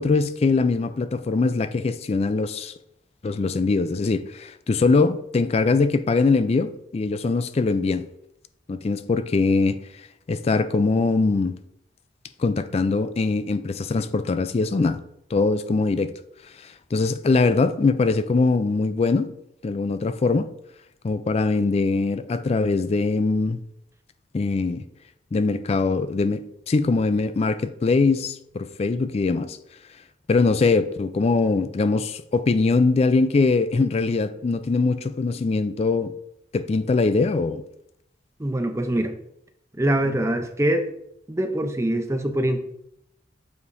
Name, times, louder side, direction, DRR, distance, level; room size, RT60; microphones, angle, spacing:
voice 1, 0.0-2.7 3.2-8.1 8.7-9.8 10.3-11.6 12.4-15.0 15.3-16.1 16.6-19.3 19.6-20.5 21.0-23.6 24.3-24.8 25.3-29.6 30.3-36.1 36.5-37.6, left 3 dB, 35° left, 0.3 m, -22 dB
voice 2, 38.4-39.1 39.8-40.9 41.3-42.6, right 1 dB, 15° right, 0.6 m, -23 dB
8.1 x 5.0 x 2.6 m
head